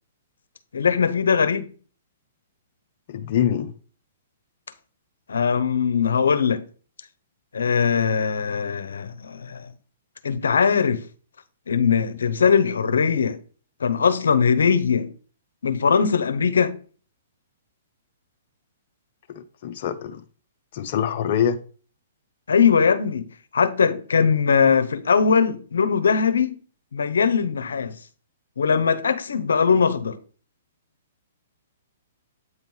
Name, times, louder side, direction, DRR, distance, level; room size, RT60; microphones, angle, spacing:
voice 1, 0.7-1.7 5.3-6.6 7.5-9.7 10.2-11.0 11.7-13.4 13.8-15.1 15.6-16.7 22.5-23.3 23.5-26.5 26.9-28.0 28.6-30.2, left 6 dB, 85° left, 0.7 m, -20 dB
voice 2, 3.1-3.7 19.3-20.2 20.7-21.6, left 9 dB, 50° left, 0.6 m, -25 dB
8.1 x 3.0 x 5.4 m
hypercardioid pair, 140°, 0 cm